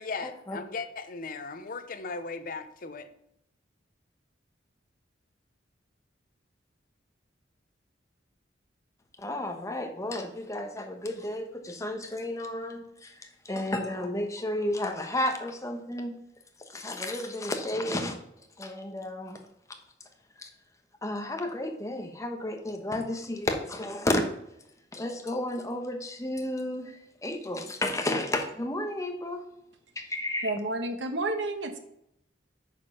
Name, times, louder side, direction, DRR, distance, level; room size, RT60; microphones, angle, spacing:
voice 1, 0.0-3.1, left 4 dB, 50° left, 9 dB, 0.7 m, -37 dB
voice 2, 9.2-16.1 16.7-18.2 18.6-19.4 20.4-20.5 21.0-24.2 24.9-29.4 30.0-30.5, left 1 dB, 15° left, 4 dB, 1.1 m, -32 dB
voice 3, 30.4-31.8, right 2 dB, 70° right, 7 dB, 1.1 m, -30 dB
9.0 x 5.3 x 5.5 m, 0.79 s
head